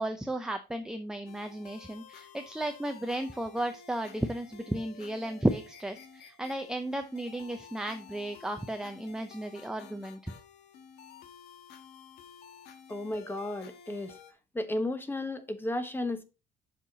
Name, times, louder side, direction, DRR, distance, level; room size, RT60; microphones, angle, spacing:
voice 1, 0.0-10.3, right 1 dB, 5° right, 0.7 m, -34 dB
sound 1, 1.3-14.3, left 6 dB, 80° left, 1.3 m, -52 dB
voice 2, 12.9-14.2 14.5-16.2, left 1 dB, 10° left, 1.2 m, -33 dB
7.2 x 5.9 x 3.9 m
cardioid pair, 110°, 17 cm